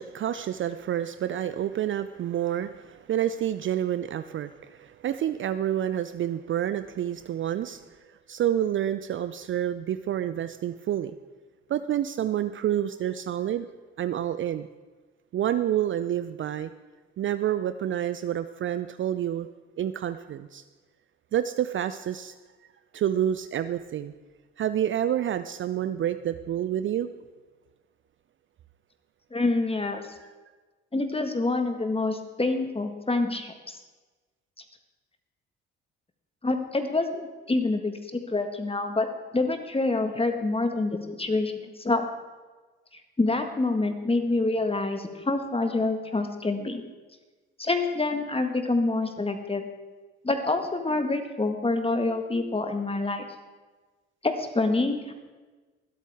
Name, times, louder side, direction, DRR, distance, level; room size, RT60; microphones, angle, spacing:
voice 1, 0.0-11.1 11.7-13.7 14.0-14.7 15.3-16.7 17.2-19.5 19.8-20.6 21.3-22.3 22.9-24.1 24.6-27.1, right 11 dB, 40° right, 12 dB, 0.5 m, -28 dB
voice 2, 29.3-30.1 30.9-33.8 36.4-39.1 39.3-42.0 43.2-46.8 47.6-49.7 50.2-53.2 54.2-55.1, left 2 dB, 15° left, 6 dB, 1.6 m, -27 dB
23.5 x 8.2 x 3.6 m, 1.3 s
figure-of-eight pair, 45°, 32 cm